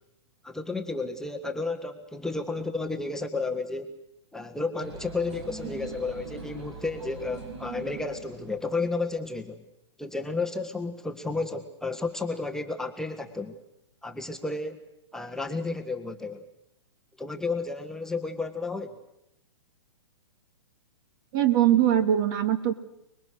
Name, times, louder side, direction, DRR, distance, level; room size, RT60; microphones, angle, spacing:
voice 1, 0.4-3.9 4.3-9.6 10.0-13.6 14.0-14.8 15.1-16.5 17.2-19.0, left 3 dB, 5° left, 3 dB, 1.4 m, -32 dB
sound 1, 4.8-9.2, right 3 dB, 70° right, 6.7 m, -42 dB
voice 2, 21.3-22.7, right 11 dB, 45° right, 10 dB, 2.2 m, -22 dB
30.0 x 21.0 x 6.5 m, 0.83 s
hypercardioid pair, 130°, 15 cm